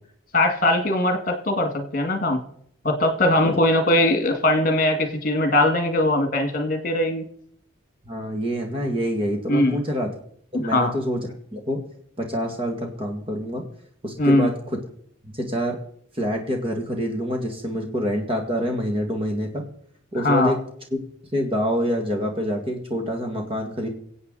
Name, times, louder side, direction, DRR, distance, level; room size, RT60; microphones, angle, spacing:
voice 1, 0.3-2.4 2.8-7.2 9.5-9.8 10.5-10.9 14.2-14.5 20.1-20.6, left 1 dB, 40° left, 7 dB, 2.1 m, -20 dB
voice 2, 8.0-10.1 10.5-11.9 12.2-13.6 14.0-14.8 15.2-15.8 16.2-19.6 20.1-20.6 20.9-21.0 21.3-23.9, equal, 25° right, 2 dB, 2.2 m, -26 dB
23.5 x 8.3 x 4.1 m, 0.64 s
head